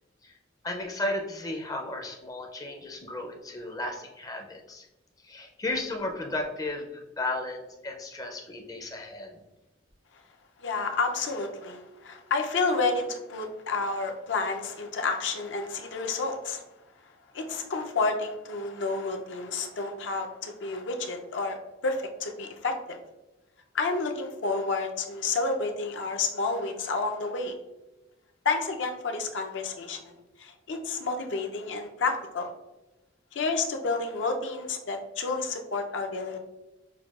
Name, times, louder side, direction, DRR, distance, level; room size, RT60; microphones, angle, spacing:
voice 1, 0.6-4.9 5.2-9.4, left 2 dB, 20° left, 2 dB, 0.4 m, -34 dB
voice 2, 10.6-16.6 17.3-23.0 23.7-27.6 28.4-30.1 30.4-32.5 33.3-36.4, left 3 dB, 70° left, 4 dB, 0.5 m, -30 dB
6.1 x 2.2 x 2.3 m, 1.0 s
head